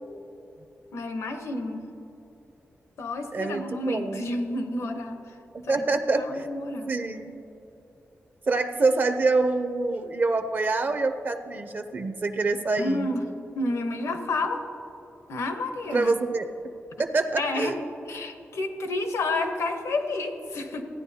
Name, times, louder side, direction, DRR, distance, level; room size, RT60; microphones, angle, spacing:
voice 1, 0.9-1.9 3.0-5.2 5.7-5.8 6.1-6.9 12.8-13.2 13.6-14.6 15.3-16.1 17.4-17.7 18.1-20.8, left 2 dB, 85° left, 6 dB, 0.9 m, -30 dB
voice 2, 3.3-4.3 5.5-6.5 6.9-7.4 8.5-13.1 15.9-16.5 17.0-17.8, right 3 dB, 40° right, 9 dB, 0.5 m, -26 dB
15.0 x 9.6 x 2.8 m, 3.0 s
wide cardioid pair, 140°, 5 cm